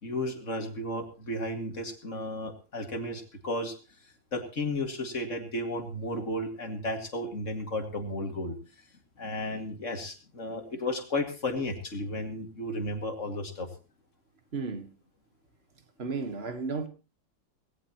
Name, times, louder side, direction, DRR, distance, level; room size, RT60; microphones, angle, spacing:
voice 1, 0.0-3.7 4.3-8.6 9.2-13.7, left 1 dB, 40° left, 2.5 m, -33 dB
voice 2, 14.5-14.9 16.0-16.9, right 4 dB, 35° right, 1.7 m, -33 dB
18.0 x 17.5 x 3.0 m
omnidirectional pair, 2.0 m